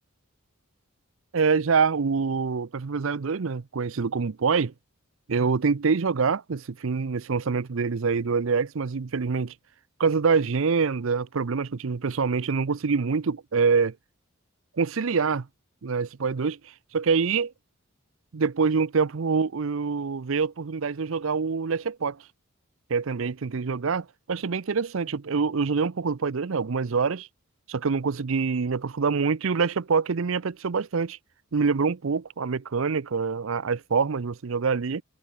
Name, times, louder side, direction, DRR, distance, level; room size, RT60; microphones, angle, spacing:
voice 1, 1.3-4.7 5.3-9.5 10.0-14.0 14.8-15.5 15.8-16.6 16.9-17.5 18.3-22.2 22.9-27.3 27.7-31.2 31.5-35.0, right 5 dB, 65° right, 0.6 m, -25 dB
head